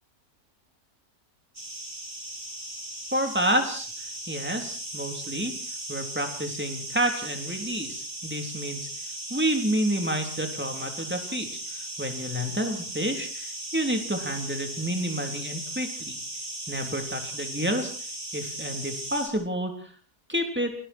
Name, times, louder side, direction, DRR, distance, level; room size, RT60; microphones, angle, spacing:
sound 1, 1.5-19.3, right 1 dB, 30° right, 4.6 m, -37 dB
voice 1, 3.1-3.9 4.3-5.5 5.9-8.9 9.3-16.2 16.7-17.9 18.3-19.9 20.3-20.7, right 1 dB, 5° right, 4 dB, 3.5 m, -29 dB
29.0 x 20.0 x 4.6 m, 0.41 s
omnidirectional pair, 1.7 m